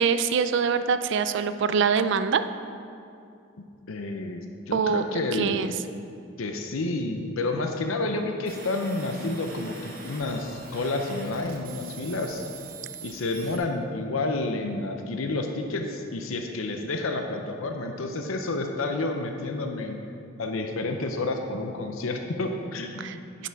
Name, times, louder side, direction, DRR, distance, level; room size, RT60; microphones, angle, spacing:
voice 1, 0.0-2.5 4.7-5.7 23.0-23.2 23.4-23.5, right 6 dB, 60° right, 11 dB, 0.4 m, -24 dB
voice 2, 3.9-5.6 6.4-12.4 13.0-20.0 20.4-23.5, left 2 dB, 85° left, 4 dB, 0.7 m, -30 dB
sound 1, 8.5-13.6, right 4 dB, 45° right, 1.3 m, -44 dB
10.0 x 5.9 x 4.7 m, 2.5 s
head